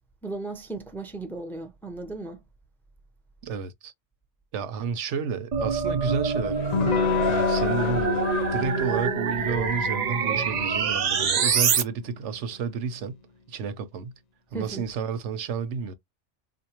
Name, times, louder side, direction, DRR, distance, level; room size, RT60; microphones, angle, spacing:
voice 1, 0.2-2.4 14.5-14.9, right 2 dB, ahead, 0.5 m, -36 dB
voice 2, 3.4-3.9 4.5-7.0 7.3-8.3 8.5-13.2 13.5-14.1 14.5-15.9, right 6 dB, 80° right, 1.0 m, -31 dB
sound 1, 5.5-11.8, right 6 dB, 55° right, 0.5 m, -26 dB
sound 2, 6.3-9.0 9.4-9.6, left 9 dB, 70° left, 0.9 m, -35 dB
Electric guitar / Strum, 6.7-12.1, left 5 dB, 40° left, 0.7 m, -29 dB
3.9 x 2.5 x 2.9 m
omnidirectional pair, 1.2 m